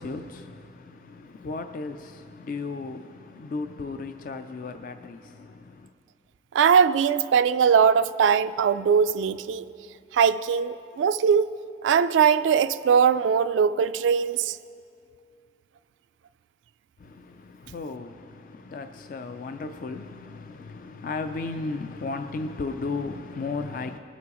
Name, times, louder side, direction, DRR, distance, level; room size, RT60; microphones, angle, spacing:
voice 1, 0.0-5.9 17.0-24.0, left 3 dB, 45° left, 0.3 m, -35 dB
voice 2, 6.5-9.7 10.1-11.5 11.8-14.6, right 7 dB, 85° right, 0.3 m, -21 dB
21.0 x 8.3 x 3.0 m
head